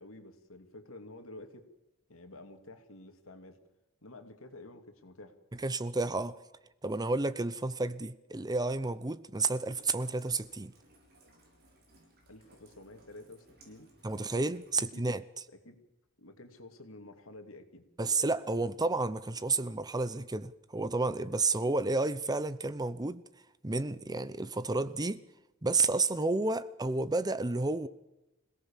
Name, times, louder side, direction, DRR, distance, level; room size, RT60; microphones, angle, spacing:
voice 1, 0.0-1.7 2.1-3.6 4.0-5.4 12.3-13.9 14.9-15.1 15.5-15.8 16.2-17.9, left 2 dB, 70° left, 2.8 m, -50 dB
voice 2, 5.6-6.3 6.8-10.7 14.0-15.2 18.0-23.2 23.6-25.2 25.6-27.9, right 3 dB, 20° right, 0.7 m, -31 dB
Rain, 9.3-14.9, right 1 dB, 50° right, 6.6 m, -62 dB
26.0 x 17.5 x 7.4 m
head